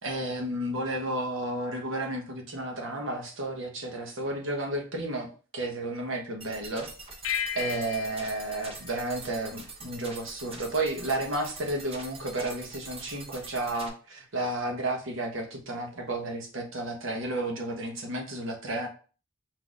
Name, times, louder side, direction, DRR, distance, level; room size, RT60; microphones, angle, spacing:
voice 1, 0.0-6.9 7.5-18.9, right 1 dB, 70° right, 2 dB, 1.1 m, -32 dB
sound 1, 6.4-13.9, right 3 dB, 30° right, 0.8 m, -44 dB
sound 2, 7.2-10.0, left 10 dB, 85° left, 0.4 m, -36 dB
4.7 x 4.0 x 2.4 m, 0.38 s
head